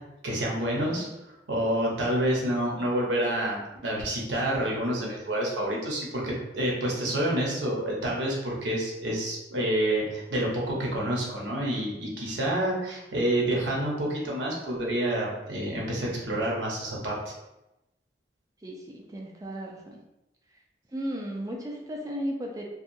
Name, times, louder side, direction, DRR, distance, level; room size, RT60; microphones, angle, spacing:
voice 1, 0.2-1.1 1.5-17.3, right 1 dB, 85° right, -3 dB, 0.8 m, -28 dB
voice 2, 18.6-20.0 20.9-22.7, equal, 20° right, 0 dB, 0.4 m, -35 dB
2.8 x 2.3 x 2.6 m, 0.96 s
head